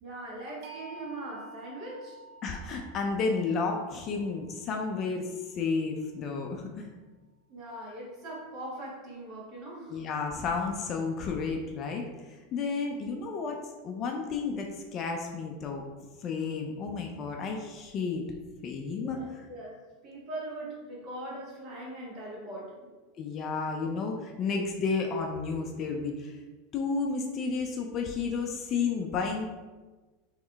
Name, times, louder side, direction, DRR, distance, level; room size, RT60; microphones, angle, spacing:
voice 1, 0.0-2.2 7.5-10.0 19.0-22.7, right 1 dB, 35° right, -4 dB, 1.4 m, -41 dB
sound 1, 0.6-6.6, right 3 dB, 60° right, 0.7 m, -51 dB
voice 2, 2.4-6.9 9.9-12.1 12.5-13.6 13.8-15.8 16.2-18.2 18.6-19.5 23.2-26.4 26.7-29.4, left 4 dB, 35° left, 2 dB, 0.5 m, -32 dB
3.6 x 3.1 x 3.5 m, 1.3 s
supercardioid pair, 140°, 0 cm